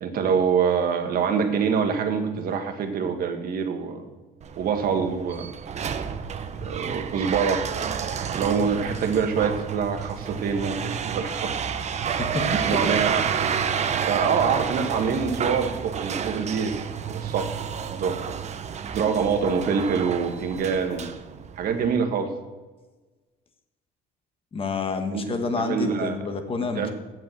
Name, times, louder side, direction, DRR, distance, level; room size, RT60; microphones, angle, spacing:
voice 1, 0.0-4.1 4.6-5.5 6.5-7.7 8.2-11.6 12.4-13.3 14.1-16.8 17.1-17.6 17.9-18.2 18.9-21.0 21.6-22.3 25.1-25.2 25.5-26.2 26.8-26.9, right 6 dB, 60° right, 5 dB, 1.7 m, -25 dB
sound 1, 4.4-21.9, right 7 dB, 40° right, 0.8 m, -30 dB
voice 2, 12.2-12.9 24.5-26.9, left 4 dB, 35° left, 7 dB, 1.4 m, -29 dB
7.8 x 7.6 x 7.6 m, 1.2 s
cardioid pair, 110°, 17 cm